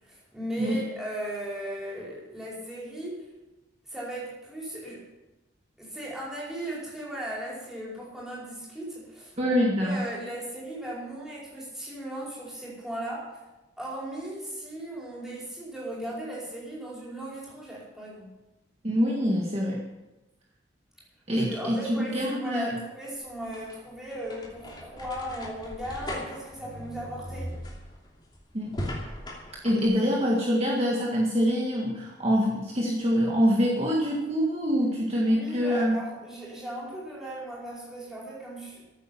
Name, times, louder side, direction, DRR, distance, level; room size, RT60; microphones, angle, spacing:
voice 1, 0.0-3.3 3.9-5.1 5.8-13.4 13.8-18.4 21.3-27.6 35.2-38.8, right 1 dB, 5° right, -6 dB, 5.0 m, -37 dB
voice 2, 9.4-10.0 18.8-19.8 21.3-22.8 28.5-28.7 29.6-36.0, equal, 35° right, -3 dB, 1.8 m, -25 dB
sound 1, 23.2-29.9, equal, 25° left, 2.9 m, -39 dB
14.0 x 8.8 x 7.3 m, 1.0 s
head